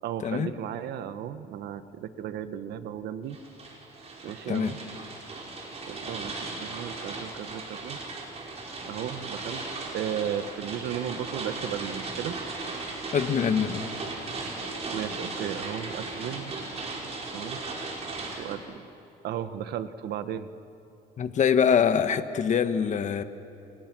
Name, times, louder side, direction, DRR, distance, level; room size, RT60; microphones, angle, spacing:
voice 1, 0.0-3.4 4.2-4.8 5.8-6.3 6.6-8.0 8.8-9.6 9.9-12.4 14.9-16.5 17.3-17.6 18.4-18.8 19.2-20.5, right 9 dB, 75° right, 11 dB, 1.3 m, -35 dB
sound 1, 3.3-18.5, right 3 dB, 40° right, 5.3 m, -37 dB
voice 2, 13.1-13.9 21.2-23.2, left 7 dB, 45° left, 10 dB, 1.5 m, -24 dB
29.5 x 28.5 x 6.2 m, 2.8 s
cardioid pair, 110°, 17 cm